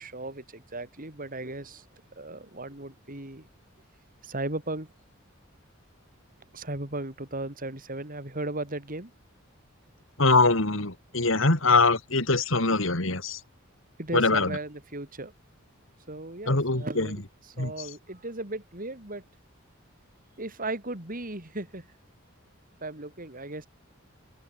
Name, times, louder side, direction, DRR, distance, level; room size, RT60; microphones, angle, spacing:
voice 1, 0.0-1.9 2.2-3.5 4.2-4.9 6.5-9.1 12.7-12.9 14.0-15.3 16.1-19.2 20.4-21.9 22.8-23.7, right 2 dB, 45° right, 4.2 m, -36 dB
voice 2, 10.2-13.4 14.1-14.6 16.5-17.1 17.6-17.7, left 3 dB, 70° left, 3.5 m, -23 dB
open air
head